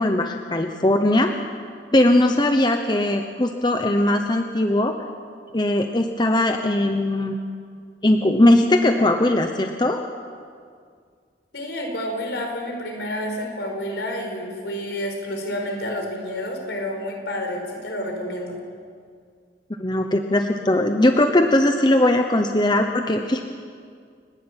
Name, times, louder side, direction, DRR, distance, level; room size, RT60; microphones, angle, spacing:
voice 1, 0.0-1.3 1.9-4.9 5.5-7.4 8.0-10.0 19.8-23.4, left 1 dB, 25° left, 5 dB, 0.9 m, -19 dB
voice 2, 11.5-18.6, left 1 dB, 75° left, 2 dB, 4.8 m, -29 dB
29.5 x 11.5 x 8.9 m, 2.1 s
head